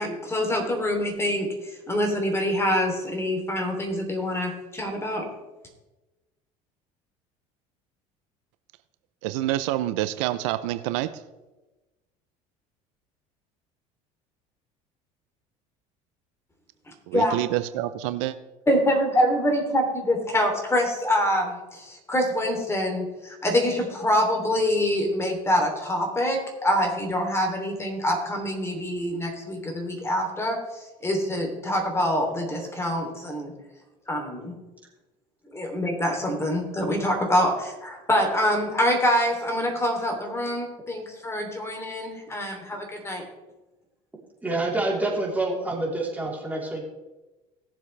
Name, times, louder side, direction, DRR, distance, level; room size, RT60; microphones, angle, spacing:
voice 1, 0.0-5.3 17.1-17.3 18.7-33.5 34.1-34.5 35.5-43.2, equal, 15° left, 2 dB, 3.1 m, -25 dB
voice 2, 9.2-11.1 17.1-18.4, right 15 dB, 80° right, 12 dB, 0.6 m, -27 dB
voice 3, 44.4-46.8, right 2 dB, 10° right, -3 dB, 3.7 m, -27 dB
18.0 x 7.4 x 3.3 m, 1.1 s
supercardioid pair, 95°, 16 cm